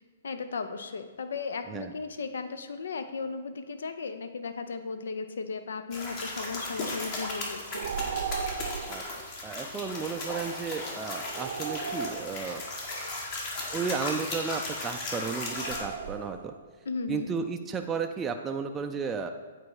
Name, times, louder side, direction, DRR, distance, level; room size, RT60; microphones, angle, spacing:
voice 1, 0.2-7.9 16.9-17.3, left 4 dB, 75° left, 9 dB, 0.6 m, -36 dB
sound 1, 5.9-15.8, left 2 dB, 45° left, 1.8 m, -36 dB
sound 2, 7.7-9.1 11.3-12.7 15.4-16.6, right 5 dB, 65° right, 0.7 m, -36 dB
voice 2, 9.4-12.6 13.7-16.5 17.1-19.3, right 5 dB, 15° right, 4 dB, 0.4 m, -33 dB
8.2 x 4.2 x 4.8 m, 1.5 s
hypercardioid pair, 125°, 0 cm